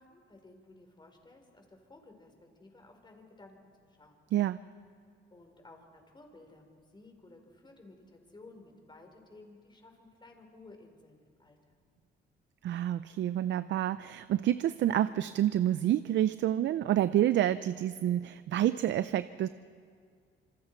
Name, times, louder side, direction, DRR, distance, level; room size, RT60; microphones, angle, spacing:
voice 1, 0.0-3.6 4.0-4.2 5.3-11.7, left 2 dB, 25° left, 4 dB, 4.1 m, -55 dB
voice 2, 12.6-19.5, right 12 dB, 65° right, 14 dB, 0.5 m, -28 dB
26.5 x 25.5 x 4.5 m, 2.1 s
cardioid pair, 90°, 20 cm